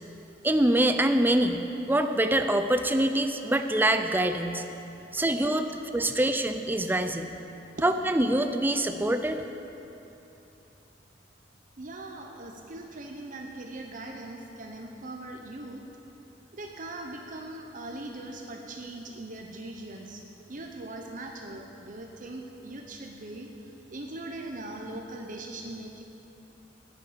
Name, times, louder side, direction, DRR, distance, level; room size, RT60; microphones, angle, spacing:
voice 1, 0.4-4.6 5.1-7.3 7.8-9.4, right 1 dB, 10° right, 7 dB, 0.5 m, -25 dB
voice 2, 11.8-15.8 16.5-23.5 23.9-26.0, right 2 dB, 45° right, 2 dB, 0.9 m, -40 dB
9.7 x 9.6 x 7.4 m, 2.9 s
head